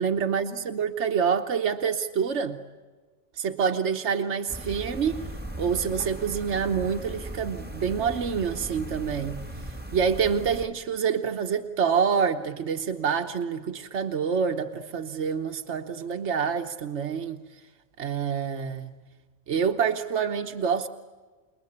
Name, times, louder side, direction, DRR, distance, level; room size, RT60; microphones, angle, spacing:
voice 1, 0.0-2.6 3.4-5.2 5.6-9.4 9.9-17.4 18.0-18.9 19.5-20.9, right 6 dB, 80° right, 5 dB, 1.4 m, -27 dB
sound 1, 4.5-10.7, right 1 dB, 10° right, 1.4 m, -38 dB
29.0 x 20.5 x 9.8 m, 1.3 s
omnidirectional pair, 1.2 m